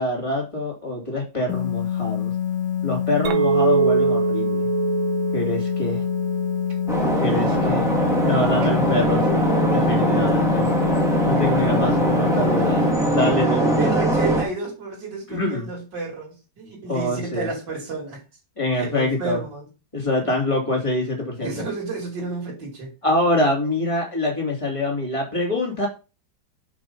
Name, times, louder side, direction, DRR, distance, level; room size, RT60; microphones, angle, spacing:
voice 1, 0.0-2.3 2.8-4.7 5.3-6.0 7.2-7.9 8.2-9.3 9.7-10.7 11.2-13.9 15.3-15.7 16.9-17.5 18.6-19.4 19.9-21.6 23.0-25.9, left 1 dB, 15° left, -1 dB, 3.0 m, -25 dB
sound 1, 1.5-12.9, left 10 dB, 65° left, 1.3 m, -26 dB
Chink clink, 3.3-7.7, right 7 dB, 85° right, 1.6 m, -24 dB
sound 2, 6.9-14.4, right 1 dB, ahead, 2.3 m, -21 dB
voice 2, 13.8-18.2 18.7-19.7 20.2-20.3 21.4-22.9, right 3 dB, 65° right, -3 dB, 3.5 m, -31 dB
6.2 x 5.9 x 5.7 m, 0.31 s
omnidirectional pair, 2.1 m